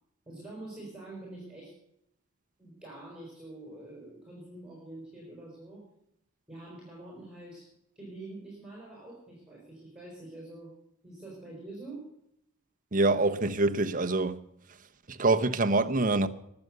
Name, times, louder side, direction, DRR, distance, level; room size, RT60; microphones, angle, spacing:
voice 1, 0.3-1.7 2.6-5.8 6.5-7.7 8.0-10.7 11.0-12.1, right 2 dB, 5° right, 5.7 m, -45 dB
voice 2, 12.9-14.4 15.1-16.3, right 2 dB, 35° right, 0.9 m, -25 dB
23.0 x 7.9 x 6.8 m
head